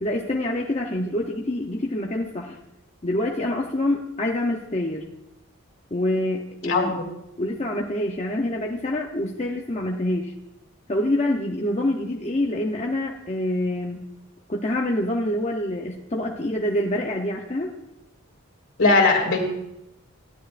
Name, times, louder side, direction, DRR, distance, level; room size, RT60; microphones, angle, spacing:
voice 1, 0.0-2.6 3.0-5.0 5.9-6.9 7.4-10.3 10.9-14.0 14.5-17.7, left 1 dB, 30° left, -1 dB, 0.7 m, -26 dB
voice 2, 6.7-7.0 18.8-19.4, left 3 dB, 65° left, 1 dB, 2.4 m, -19 dB
16.0 x 11.0 x 2.5 m, 0.88 s
head